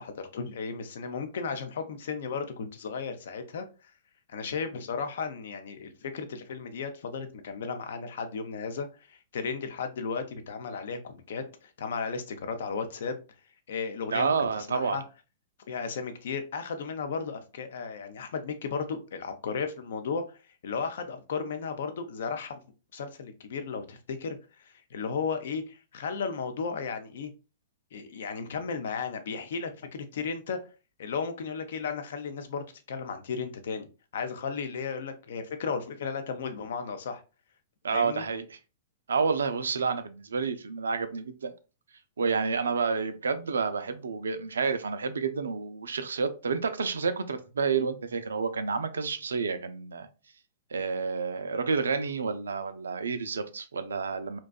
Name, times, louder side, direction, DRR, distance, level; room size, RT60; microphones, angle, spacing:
voice 1, 0.0-3.9 4.3-13.2 13.7-14.3 14.7-15.0 15.7-20.4 20.6-22.6 22.9-27.3 27.9-30.6 31.0-33.9 34.1-37.2 37.9-38.2, left 5 dB, 65° left, 0.5 m, -35 dB
voice 2, 14.1-15.0 37.8-38.6 39.1-41.5 42.2-50.1 50.7-54.4, right 5 dB, 80° right, 0.4 m, -29 dB
2.6 x 2.2 x 2.2 m
hypercardioid pair, 110°, 0 cm